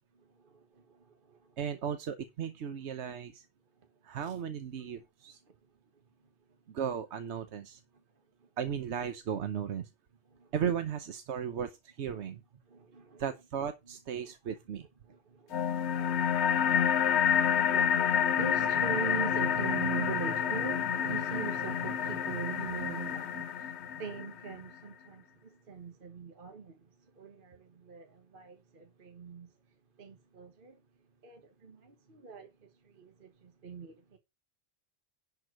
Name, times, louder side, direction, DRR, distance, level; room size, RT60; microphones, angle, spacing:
voice 1, 0.1-1.6 5.4-5.5 8.4-8.5 10.3-10.5 11.3-11.5 12.1-12.3 12.7-13.2 13.9-14.5 15.0-29.5 30.0-30.8 31.2-34.2, right 5 dB, 50° right, 1.4 m, -42 dB
voice 2, 1.6-3.5 4.0-5.4 6.7-7.8 8.6-9.9 10.5-12.4 13.2-14.9, right 8 dB, 85° right, 1.2 m, -36 dB
sound 1, 15.5-24.5, left 8 dB, 80° left, 1.1 m, -29 dB
11.0 x 4.6 x 6.3 m
omnidirectional pair, 1.1 m